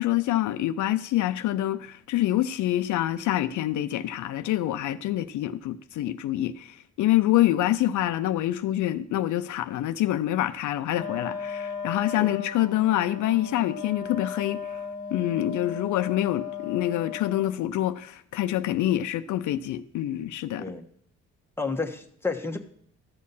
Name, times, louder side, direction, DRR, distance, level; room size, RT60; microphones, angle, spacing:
voice 1, 0.0-14.8 15.1-20.6, left 13 dB, 75° left, 0.5 m, -26 dB
Wind instrument woodwind instrument, 10.9-17.6, left 6 dB, 25° left, 1.8 m, -36 dB
voice 2, 21.6-22.6, left 4 dB, 10° left, 1.2 m, -31 dB
13.0 x 6.4 x 5.6 m
cardioid pair, 90°, 30 cm